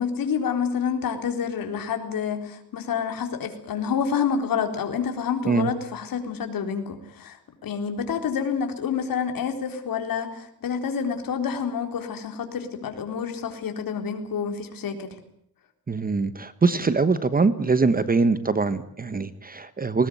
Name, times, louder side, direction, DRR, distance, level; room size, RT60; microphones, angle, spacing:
voice 1, 0.0-7.4 7.6-15.1, left 7 dB, 65° left, 5 dB, 4.0 m, -28 dB
voice 2, 15.9-20.1, right 4 dB, 25° right, 13 dB, 1.2 m, -23 dB
20.0 x 19.5 x 9.3 m, 0.67 s
cardioid pair, 120°, 38 cm